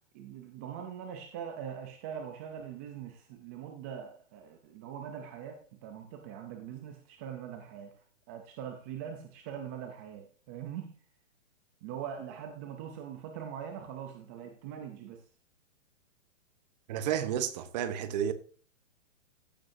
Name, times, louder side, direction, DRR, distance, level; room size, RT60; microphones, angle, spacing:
voice 1, 0.1-7.9 8.3-10.9 11.8-15.2, right 8 dB, 15° right, 0.4 m, -42 dB
voice 2, 16.9-18.3, right 9 dB, 35° right, 1.0 m, -31 dB
14.5 x 7.8 x 2.7 m
hypercardioid pair, 155°, 38 cm